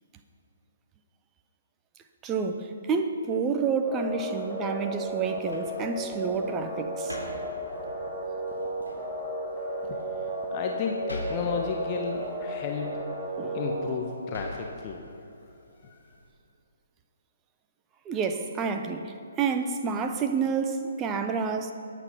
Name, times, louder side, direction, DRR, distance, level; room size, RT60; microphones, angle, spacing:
voice 1, 2.2-7.2 13.4-13.6 18.0-21.7, right 5 dB, 15° right, 7 dB, 0.9 m, -29 dB
sound 1, 3.8-13.9, right 1 dB, ahead, 2.3 m, -34 dB
sound 2, 5.1-16.3, left 1 dB, 85° left, 3.7 m, -46 dB
voice 2, 10.5-13.0 13.5-15.1 15.8-16.2, left 5 dB, 25° left, 1 dB, 1.2 m, -33 dB
23.0 x 9.1 x 5.6 m, 2.6 s
figure-of-eight pair, 135°, 0 cm